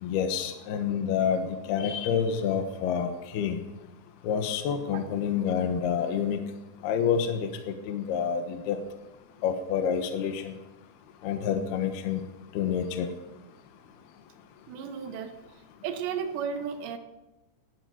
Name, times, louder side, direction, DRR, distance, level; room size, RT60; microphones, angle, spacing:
voice 1, 0.0-3.1 3.3-3.6 4.2-6.4 6.8-8.8 9.4-10.5 11.2-12.2 12.5-13.1, left 7 dB, 70° left, 6 dB, 2.9 m, -28 dB
voice 2, 14.7-15.3 15.8-17.0, right 7 dB, 75° right, 8 dB, 3.3 m, -33 dB
17.5 x 11.5 x 6.3 m, 0.99 s
omnidirectional pair, 5.3 m